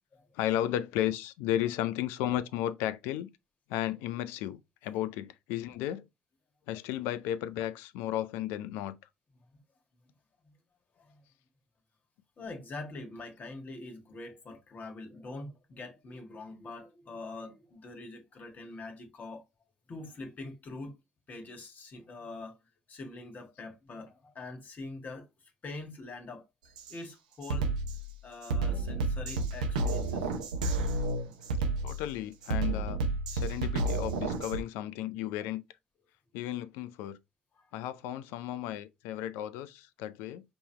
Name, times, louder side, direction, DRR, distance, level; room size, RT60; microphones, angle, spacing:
voice 1, 0.3-3.3 3.7-6.1 6.7-9.0 31.8-33.0 33.3-35.6 36.3-37.2 37.7-40.4, left 12 dB, 75° left, 0.4 m, -34 dB
voice 2, 12.4-19.4 19.9-21.0 21.3-22.6 22.9-25.3 25.6-26.5 26.9-27.7 28.2-30.3 31.2-31.3 37.6-37.7, left 2 dB, 45° left, 1.7 m, -44 dB
Drum kit, 26.8-26.9 27.4-34.6, right 2 dB, 90° right, 0.7 m, -31 dB
5.3 x 3.0 x 3.2 m
hypercardioid pair, 55°, 4 cm